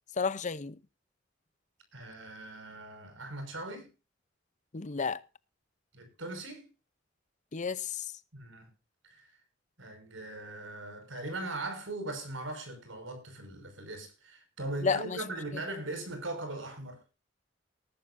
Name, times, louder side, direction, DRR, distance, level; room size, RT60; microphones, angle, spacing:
voice 1, 0.2-0.8 4.7-5.2 7.5-8.1 14.8-15.2, left 5 dB, 40° left, 0.7 m, -31 dB
voice 2, 1.9-3.9 5.9-6.6 8.3-8.7 9.0-9.3 9.8-17.0, right 2 dB, 85° right, 5.5 m, -40 dB
19.5 x 12.0 x 2.6 m
head